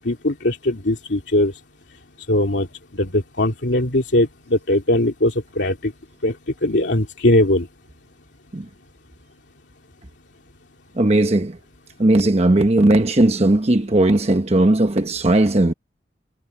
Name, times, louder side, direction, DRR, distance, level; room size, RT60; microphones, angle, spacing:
voice 1, 0.0-1.5 2.3-2.7 2.9-5.9 6.2-6.4 6.6-7.7, left 1 dB, 80° left, 2.5 m, -20 dB
voice 2, 11.0-11.6 12.0-15.7, right 1 dB, 35° right, 1.0 m, -17 dB
head